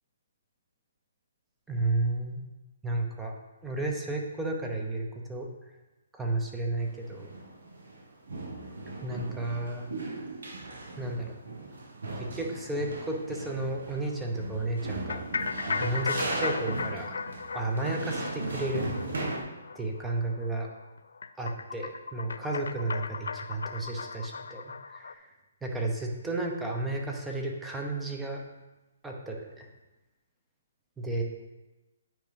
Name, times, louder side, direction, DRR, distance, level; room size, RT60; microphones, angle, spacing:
voice 1, 1.7-2.4 2.8-3.3 3.6-5.5 6.1-7.3 9.0-9.8 11.0-11.3 12.2-15.2 15.8-17.2 17.5-18.9 19.7-20.7 21.4-25.3 25.6-28.4 29.0-29.7 31.0-31.2, right 2 dB, 5° right, 1 dB, 0.9 m, -32 dB
sound 1, 6.8-8.0 8.3-19.4, right 2 dB, 80° right, 1.7 m, -37 dB
sound 2, 15.1-25.1, left 5 dB, 80° left, 0.4 m, -36 dB
9.2 x 4.9 x 5.2 m, 1.1 s
hypercardioid pair, 165°, 0 cm